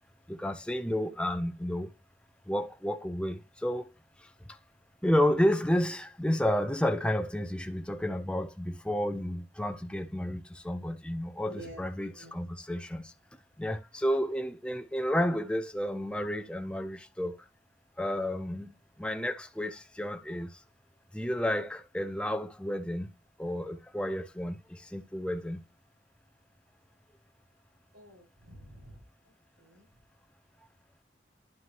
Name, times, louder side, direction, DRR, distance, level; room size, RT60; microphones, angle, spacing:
voice 1, 0.3-1.9 2.5-3.9 5.0-13.1 13.6-17.4 18.0-20.5 21.1-23.1 23.4-25.6, left 1 dB, 5° left, 0.6 m, -31 dB
voice 2, 11.5-11.8 12.1-12.4 27.9-29.0 29.6-29.8, right 1 dB, 70° right, 5.6 m, -49 dB
11.0 x 4.8 x 2.9 m
head